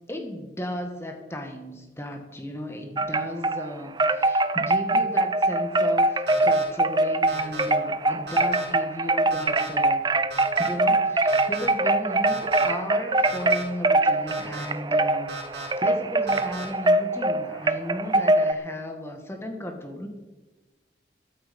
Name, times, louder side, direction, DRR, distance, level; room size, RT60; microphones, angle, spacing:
voice 1, 0.1-10.0 10.6-20.1, equal, 15° left, 4 dB, 2.0 m, -35 dB
Wind chime, 3.0-3.6 4.0-18.5, right 2 dB, 25° right, 0.5 m, -23 dB
sound 1, 6.3-6.6 7.3-7.6 8.3-8.6 9.3-9.7 10.3-10.7 11.3-11.7 12.3-12.6 13.2-13.6 14.3-14.6 15.3-15.7 16.3-16.6, right 2 dB, 75° right, 6.2 m, -37 dB
14.0 x 12.5 x 5.6 m, 1.2 s
head